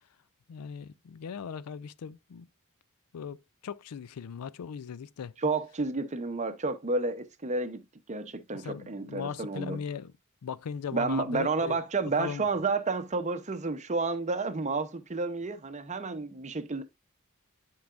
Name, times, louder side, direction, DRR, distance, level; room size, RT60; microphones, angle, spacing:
voice 1, 0.5-2.5 3.1-5.3 8.5-10.1 10.4-11.8 12.2-12.5, left 7 dB, 85° left, 0.4 m, -38 dB
voice 2, 5.4-7.8 8.1-9.8 10.9-16.8, right 3 dB, 30° right, 0.7 m, -31 dB
10.5 x 4.6 x 2.4 m
head